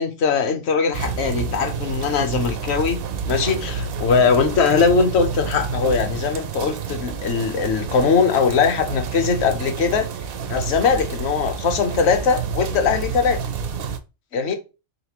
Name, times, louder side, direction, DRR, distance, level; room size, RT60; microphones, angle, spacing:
voice 1, 0.0-3.0 3.3-10.1 10.5-13.4 14.3-14.5, left 5 dB, 55° left, 1.0 m, -20 dB
sound 1, 0.9-14.0, right 6 dB, 60° right, 0.6 m, -29 dB
4.1 x 3.6 x 2.9 m
omnidirectional pair, 1.4 m